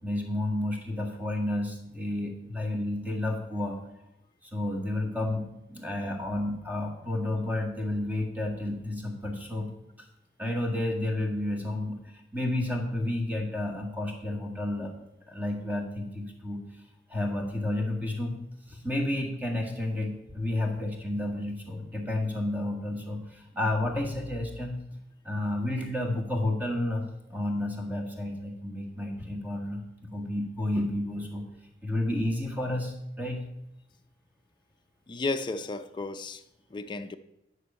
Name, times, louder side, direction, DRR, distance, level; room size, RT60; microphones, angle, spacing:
voice 1, 0.0-3.8 4.4-9.7 10.0-10.1 10.4-14.9 15.3-16.6 17.1-18.3 18.7-24.7 25.2-27.0 27.3-29.8 30.1-31.4 31.8-33.4, left 1 dB, 10° right, 1.6 m, -31 dB
voice 2, 35.1-36.4 36.7-37.2, left 3 dB, 25° left, 0.4 m, -33 dB
9.7 x 6.3 x 5.4 m
head